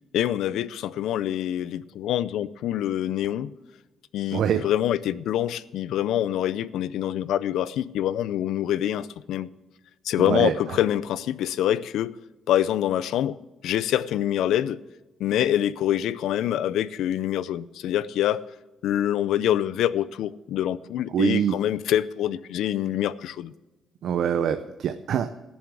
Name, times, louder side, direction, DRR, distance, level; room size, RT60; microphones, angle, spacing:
voice 1, 0.1-3.5 4.1-9.5 10.0-12.1 12.5-13.4 13.6-14.8 15.2-18.4 18.8-23.5, left 11 dB, 80° left, 17 dB, 0.5 m, -25 dB
voice 2, 4.3-4.6 10.2-10.8 21.1-21.6 24.0-25.3, right 8 dB, 60° right, 9 dB, 0.6 m, -24 dB
16.0 x 7.2 x 6.2 m, 1.1 s
cardioid pair, 160°, 0 cm